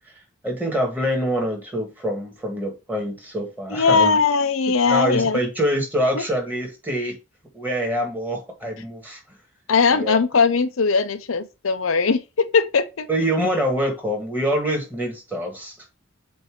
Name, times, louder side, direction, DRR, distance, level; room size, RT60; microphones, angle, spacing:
voice 1, 0.4-4.2 4.9-7.2 7.5-9.2 9.9-10.2 13.1-15.9, equal, 10° right, 1.8 m, -25 dB
voice 2, 3.7-5.4 6.1-6.2 9.7-13.1, left 5 dB, 90° left, 0.7 m, -19 dB
7.8 x 2.7 x 4.9 m
head